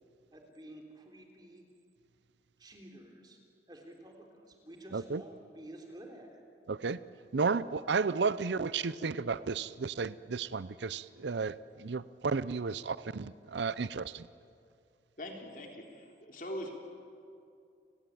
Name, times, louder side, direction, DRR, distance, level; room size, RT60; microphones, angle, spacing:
voice 1, 0.3-1.6 2.6-3.4 3.7-6.4, right 1 dB, 25° right, 2 dB, 3.5 m, -51 dB
voice 2, 6.7-7.0 7.3-14.3, right 4 dB, 80° right, 17 dB, 0.6 m, -33 dB
voice 3, 15.2-16.7, left 1 dB, 50° left, 1 dB, 3.5 m, -42 dB
29.5 x 18.0 x 9.1 m, 2.4 s
head